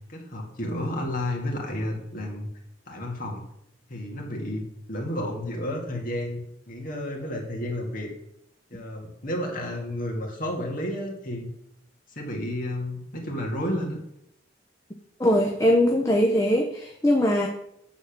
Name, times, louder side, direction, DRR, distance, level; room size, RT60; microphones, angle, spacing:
voice 1, 0.1-2.5 2.9-3.4 3.9-4.6 4.9-8.1 8.7-11.5 12.2-14.0, left 1 dB, 50° left, -1 dB, 2.0 m, -31 dB
voice 2, 15.2-17.5, left 1 dB, 15° left, 1 dB, 0.7 m, -21 dB
8.8 x 4.1 x 6.5 m, 0.78 s
head